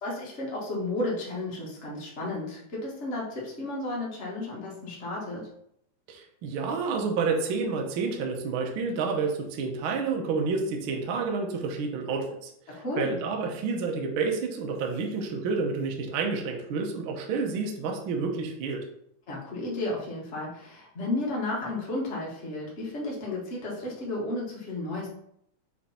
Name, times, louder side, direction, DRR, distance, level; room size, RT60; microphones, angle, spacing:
voice 1, 0.0-5.5 12.7-13.2 19.3-25.1, left 2 dB, 35° left, -4 dB, 1.1 m, -33 dB
voice 2, 6.1-12.5 13.0-18.8, right 4 dB, 80° right, 2 dB, 1.2 m, -29 dB
6.5 x 3.6 x 4.3 m, 0.72 s
omnidirectional pair, 3.6 m